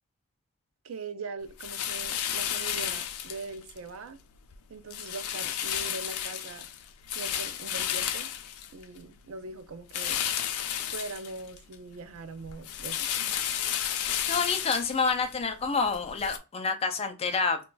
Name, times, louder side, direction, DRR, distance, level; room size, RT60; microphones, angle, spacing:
voice 1, 0.8-4.2 4.7-6.7 7.1-8.3 8.7-10.2 10.9-13.4, right 3 dB, 70° right, 0.4 m, -41 dB
sound 1, 1.6-3.8 4.2-4.6 4.9-9.2 9.9-11.8 12.1-16.4, left 10 dB, 90° left, 0.4 m, -33 dB
voice 2, 14.3-17.6, left 4 dB, 30° left, 0.4 m, -28 dB
2.3 x 2.3 x 3.8 m
head